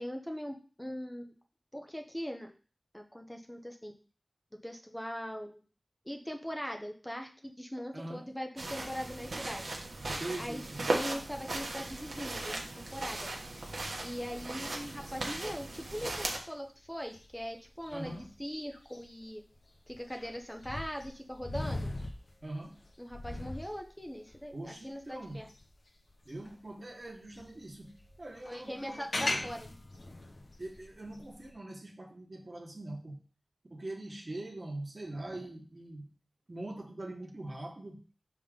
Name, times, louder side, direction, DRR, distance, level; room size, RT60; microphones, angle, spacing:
voice 1, 0.0-1.3 1.7-2.5 2.9-4.0 4.6-5.6 6.0-9.8 10.4-10.6 10.9-13.6 14.0-19.4 19.9-21.9 23.0-25.5 28.5-29.7, equal, 10° left, 3 dB, 0.8 m, -41 dB
voice 2, 7.9-8.3 10.2-10.9 17.9-18.3 22.4-22.8 24.5-25.4 26.2-29.0 29.3-29.5 30.6-33.2 33.7-36.1 36.5-38.0, right 1 dB, 50° right, 1 dB, 1.4 m, -42 dB
sound 1, 8.6-16.4, right 2 dB, 85° right, 1.1 m, -37 dB
sound 2, 13.1-26.6 27.0-31.5, left 2 dB, 65° left, 0.9 m, -42 dB
5.6 x 3.8 x 5.0 m, 0.39 s
wide cardioid pair, 55°, 0 cm